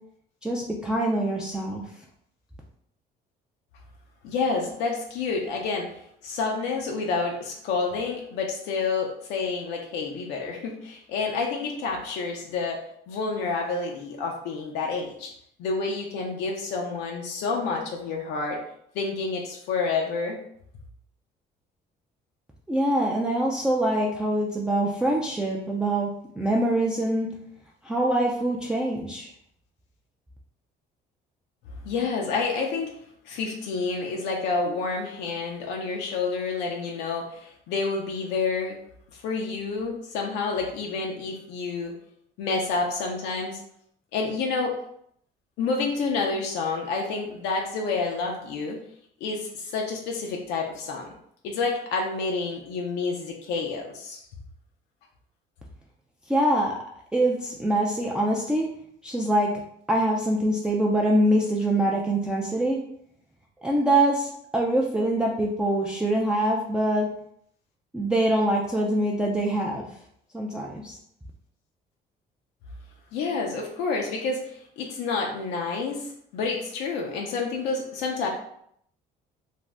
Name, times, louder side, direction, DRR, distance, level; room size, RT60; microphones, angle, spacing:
voice 1, 0.4-1.8 22.7-26.1 26.4-27.3 27.8-29.3 56.3-56.8 57.1-58.7 59.0-59.5 59.9-62.8 63.6-67.1 67.9-69.9 70.3-71.0, right 1 dB, 5° right, -3 dB, 0.3 m, -24 dB
voice 2, 4.2-5.9 6.2-12.8 13.1-15.3 15.6-18.6 18.9-20.4 31.8-32.9 33.2-38.8 39.1-41.9 42.4-43.6 44.1-44.7 45.6-48.8 49.2-51.1 51.4-54.2 73.1-78.3, left 4 dB, 90° left, 0 dB, 0.5 m, -29 dB
2.5 x 2.0 x 3.3 m, 0.69 s
cardioid pair, 110°, 17 cm